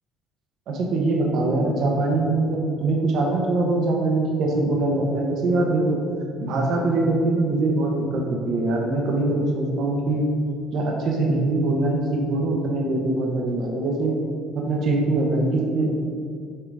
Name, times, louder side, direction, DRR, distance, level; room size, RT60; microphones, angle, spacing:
voice 1, 0.7-6.0 6.4-10.2 10.7-14.1 14.5-15.9, right 2 dB, 60° right, 0 dB, 1.0 m, -23 dB
5.7 x 3.7 x 4.8 m, 2.2 s
cardioid pair, 125°, 0 cm